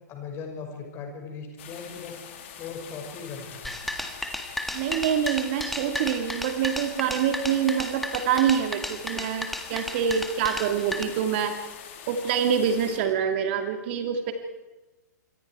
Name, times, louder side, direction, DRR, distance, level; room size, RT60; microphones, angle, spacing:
voice 1, 0.1-2.2 2.6-3.8, left 5 dB, 25° left, 2 dB, 5.7 m, -38 dB
sound 1, 1.6-13.0, left 8 dB, 45° left, 3.3 m, -44 dB
sound 2, 3.6-11.0, left 1 dB, ahead, 1.8 m, -33 dB
voice 2, 4.7-11.5 12.1-14.3, right 8 dB, 40° right, 6 dB, 2.6 m, -26 dB
27.0 x 24.0 x 4.7 m, 1.1 s
figure-of-eight pair, 110°, 10 cm